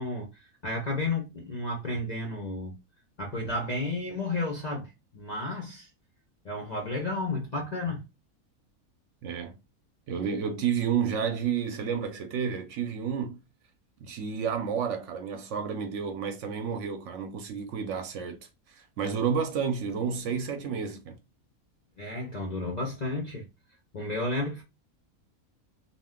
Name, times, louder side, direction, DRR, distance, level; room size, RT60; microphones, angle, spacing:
voice 1, 0.0-2.8 3.2-5.9 6.4-8.1 22.0-23.5 23.9-24.6, left 2 dB, 60° left, 0.4 m, -32 dB
voice 2, 9.2-9.6 10.1-13.4 14.0-18.4 18.7-21.2, right 7 dB, 70° right, 0.8 m, -30 dB
2.5 x 2.1 x 3.5 m
omnidirectional pair, 1.5 m